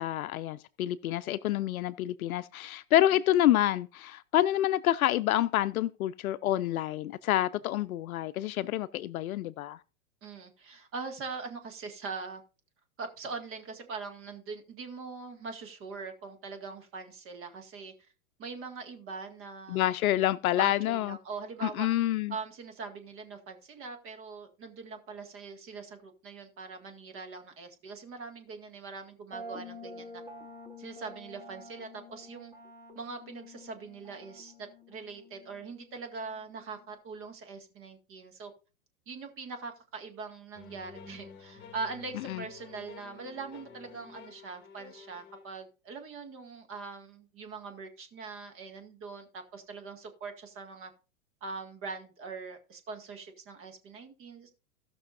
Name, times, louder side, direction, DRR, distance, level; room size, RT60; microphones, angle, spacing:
voice 1, 0.0-9.8 19.7-21.2 21.6-22.3 42.3-42.4, left 13 dB, 80° left, 0.6 m, -28 dB
voice 2, 10.2-12.4 13.0-17.9 18.4-19.8 20.6-21.9 22.3-30.2 30.8-32.5 33.0-38.5 39.1-50.9 51.4-54.5, right 4 dB, 30° right, 1.9 m, -42 dB
sound 1, 29.3-36.9, left 1 dB, 5° right, 1.6 m, -49 dB
sound 2, 40.5-45.5, left 6 dB, 25° left, 1.7 m, -50 dB
17.5 x 6.2 x 2.5 m
hypercardioid pair, 130°, 42 cm